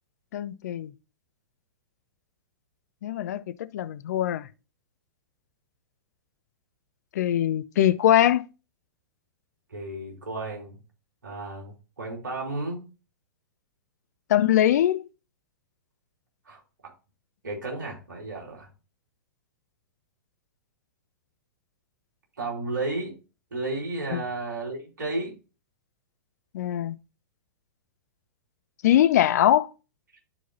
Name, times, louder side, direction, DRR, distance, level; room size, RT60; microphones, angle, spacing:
voice 1, 0.3-0.9 3.0-4.5 7.1-8.4 14.3-15.0 24.1-24.2 26.5-27.0 28.8-29.7, left 11 dB, 50° left, 0.5 m, -22 dB
voice 2, 9.7-10.8 11.2-12.8 16.4-16.9 17.4-18.7 22.4-23.1 23.5-25.3, right 2 dB, 65° right, 3.3 m, -33 dB
12.5 x 4.6 x 2.7 m
figure-of-eight pair, 105°, 11 cm